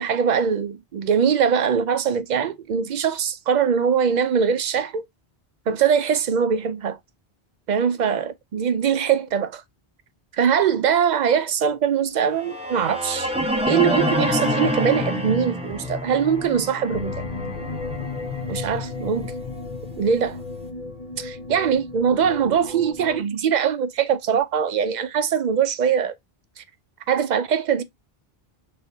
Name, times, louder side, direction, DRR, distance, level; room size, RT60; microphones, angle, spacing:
voice 1, 0.0-5.0 5.7-7.0 7.7-9.6 10.4-13.3 13.7-17.2 18.5-19.3 20.0-20.4 21.2-26.1 26.6-26.7 27.1-27.8, right 7 dB, 55° right, 0.5 m, -22 dB
sound 1, 12.3-20.4, left 1 dB, 5° right, 0.7 m, -27 dB
sound 2, 16.9-23.2, left 3 dB, 40° left, 1.0 m, -35 dB
4.2 x 3.5 x 2.7 m
omnidirectional pair, 1.0 m